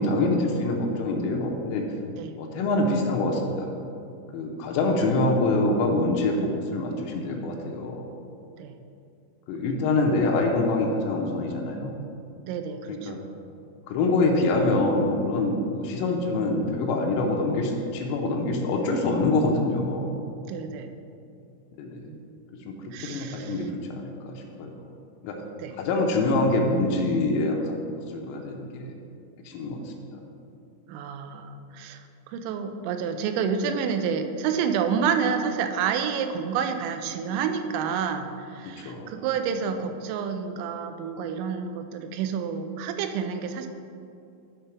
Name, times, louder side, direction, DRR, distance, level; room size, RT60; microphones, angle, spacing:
voice 1, 0.0-1.9 2.4-3.7 4.3-8.1 9.5-12.0 12.9-13.2 13.9-20.1 21.8-22.1 22.7-24.9 25.2-25.4 25.8-27.8 28.1-28.9 29.4-30.2 38.8-39.1, left 2 dB, 85° left, 0 dB, 3.4 m, -25 dB
voice 2, 12.5-13.2 20.5-20.9 22.1-22.4 22.9-23.5 25.6-25.7 30.9-32.0 32.3-43.7, right 6 dB, 90° right, 7 dB, 3.2 m, -29 dB
11.0 x 4.0 x 5.8 m, 2.6 s
omnidirectional pair, 5.8 m